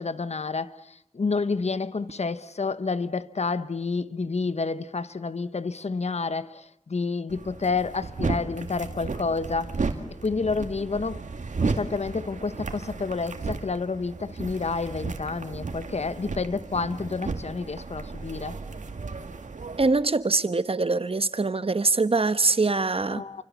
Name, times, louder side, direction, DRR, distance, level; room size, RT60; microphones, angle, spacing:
voice 1, 0.0-9.8 10.2-11.2 11.6-18.6 23.1-23.4, left 4 dB, 60° left, 1.1 m, -29 dB
sound 1, 7.3-19.9, right 4 dB, 85° right, 2.1 m, -34 dB
voice 2, 19.8-23.2, right 3 dB, 50° right, 1.2 m, -23 dB
29.5 x 25.0 x 7.2 m
wide cardioid pair, 60°, 12 cm